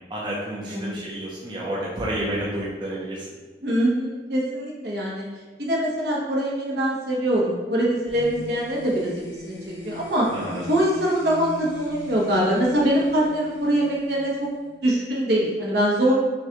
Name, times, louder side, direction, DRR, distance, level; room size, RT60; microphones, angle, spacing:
voice 1, 0.1-3.3 10.3-10.6, right 1 dB, 25° right, -6 dB, 0.6 m, -30 dB
voice 2, 3.6-5.3 5.6-10.3 10.6-14.5 14.8-16.1, right 1 dB, 60° right, -4 dB, 1.0 m, -23 dB
sound 1, 8.1-14.7, left 1 dB, 75° left, 1.1 m, -41 dB
6.1 x 2.3 x 2.9 m, 1.3 s
head